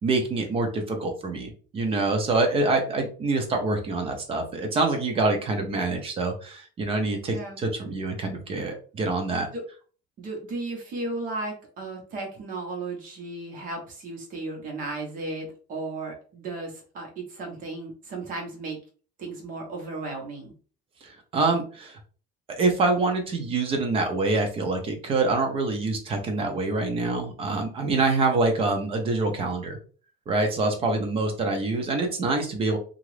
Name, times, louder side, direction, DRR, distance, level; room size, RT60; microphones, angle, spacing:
voice 1, 0.0-9.5 21.0-22.0 22.5-29.8 30.3-32.8, right 3 dB, 30° right, 4 dB, 0.6 m, -26 dB
voice 2, 10.2-18.8 19.2-20.5, right 2 dB, 45° right, 1 dB, 1.0 m, -35 dB
2.9 x 2.5 x 3.2 m, 0.39 s
cardioid pair, 175°, 20 cm